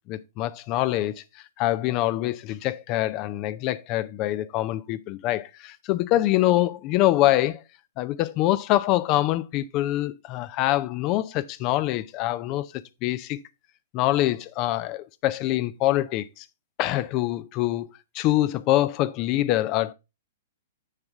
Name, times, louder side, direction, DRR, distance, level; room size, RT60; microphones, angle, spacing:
voice 1, 0.1-7.6 8.0-13.4 13.9-16.5 16.8-17.9 18.1-19.9, left 15 dB, 40° left, 0.4 m, -25 dB
7.0 x 6.6 x 3.5 m
figure-of-eight pair, 110°, 0 cm